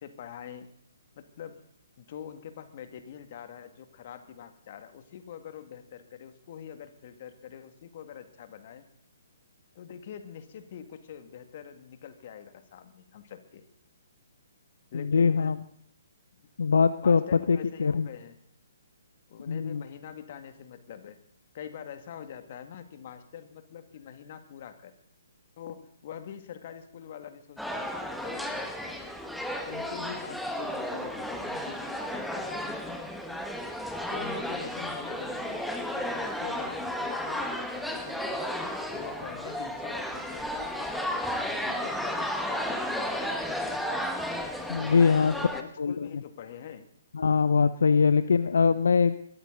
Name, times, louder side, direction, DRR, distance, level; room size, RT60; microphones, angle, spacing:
voice 1, 0.0-0.7 1.2-1.6 2.0-8.9 9.8-13.7 14.9-15.6 17.0-18.4 19.3-21.2 21.5-24.9 25.6-29.1 29.6-33.1 34.1-35.6 35.9-38.4 38.9-44.1 44.9-46.9, left 8 dB, 45° left, 8 dB, 2.1 m, -44 dB
voice 2, 14.9-15.6 16.6-18.1 19.5-19.8 44.7-45.3 45.8-46.1 47.1-49.3, left 5 dB, 70° left, 13 dB, 0.7 m, -23 dB
sound 1, 27.6-45.6, equal, ahead, 1.4 m, -33 dB
22.0 x 14.0 x 4.0 m, 0.63 s
figure-of-eight pair, 135°, 0 cm